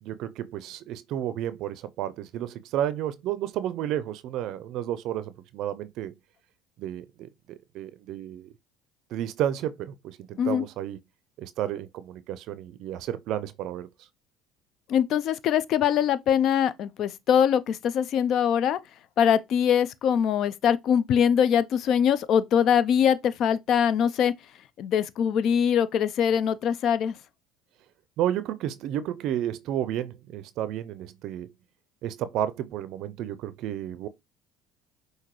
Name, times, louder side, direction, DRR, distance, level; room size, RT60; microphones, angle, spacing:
voice 1, 0.0-6.1 6.8-8.5 9.1-11.0 11.4-14.1 28.2-31.5 32.0-34.1, right 11 dB, 65° right, 0.4 m, -32 dB
voice 2, 14.9-18.8 19.2-24.3 24.8-27.1, left 8 dB, 60° left, 0.5 m, -23 dB
5.8 x 2.6 x 3.0 m
supercardioid pair, 80°, 0 cm